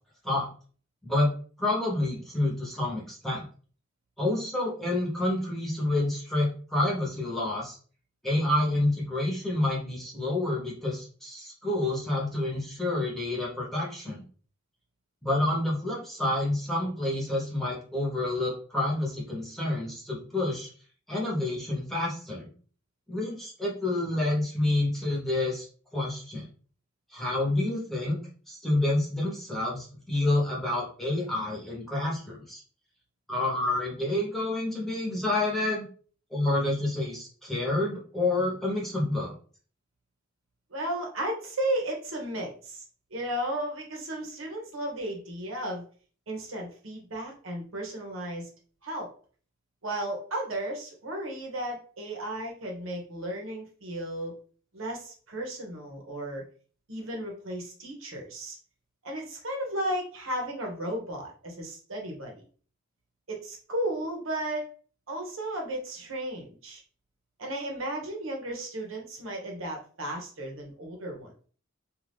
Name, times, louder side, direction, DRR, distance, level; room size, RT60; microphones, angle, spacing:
voice 1, 1.6-3.4 4.2-7.8 8.2-14.2 15.2-20.7 21.1-22.5 23.1-25.6 25.9-26.4 27.1-28.2 28.5-32.6 33.3-35.9 36.3-39.3, left 2 dB, ahead, -5 dB, 0.9 m, -28 dB
voice 2, 40.7-45.8 46.3-48.5 48.8-49.1 49.8-54.3 54.7-56.4 56.9-58.6 59.0-62.3 63.3-64.6 65.1-66.8 67.4-71.5, right 1 dB, 75° right, 0 dB, 0.9 m, -34 dB
2.6 x 2.4 x 3.3 m, 0.42 s
head